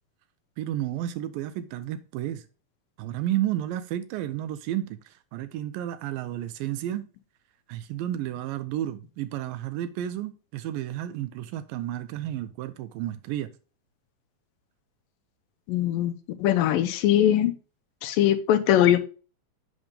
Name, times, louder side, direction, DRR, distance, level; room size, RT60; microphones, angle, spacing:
voice 1, 0.6-2.4 3.0-7.1 7.7-13.5, right 12 dB, 85° right, 2.3 m, -32 dB
voice 2, 15.7-16.1 16.4-17.5 18.0-19.0, left 11 dB, 85° left, 2.4 m, -21 dB
8.0 x 5.2 x 3.5 m
omnidirectional pair, 4.0 m